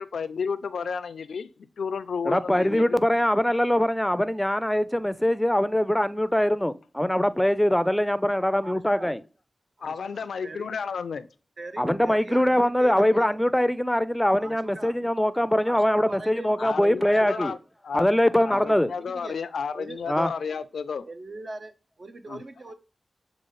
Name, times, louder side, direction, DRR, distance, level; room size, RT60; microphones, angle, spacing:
voice 1, 0.0-3.0 9.8-11.3 16.6-17.6 17.9-18.1 18.4-21.1 22.3-22.4, left 6 dB, 90° left, 0.3 m, -32 dB
voice 2, 2.2-9.2 11.8-17.5 17.9-18.9 20.1-20.3, left 1 dB, 10° left, 0.4 m, -23 dB
voice 3, 8.6-9.1 9.8-10.8 11.6-13.5 14.4-14.9 15.6-17.5 18.4-19.4 19.7-20.0 21.0-21.7 22.0-22.7, right 2 dB, 55° right, 0.6 m, -42 dB
6.9 x 2.4 x 3.1 m
cardioid pair, 45°, 0 cm